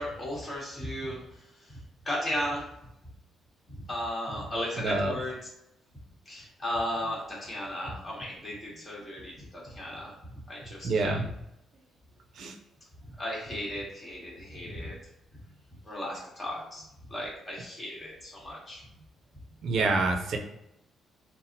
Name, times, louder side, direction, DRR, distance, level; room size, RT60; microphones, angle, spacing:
voice 1, 0.0-1.8 2.0-2.6 3.7-5.3 6.3-10.1 10.5-11.2 13.2-15.0 15.8-16.8 17.1-18.8, equal, 25° left, -5 dB, 1.3 m, -35 dB
voice 2, 4.8-5.2 10.8-11.3 12.4-12.6 19.6-20.4, right 3 dB, 65° right, 3 dB, 0.4 m, -27 dB
3.9 x 2.0 x 2.6 m, 0.84 s
cardioid pair, 90°, 0 cm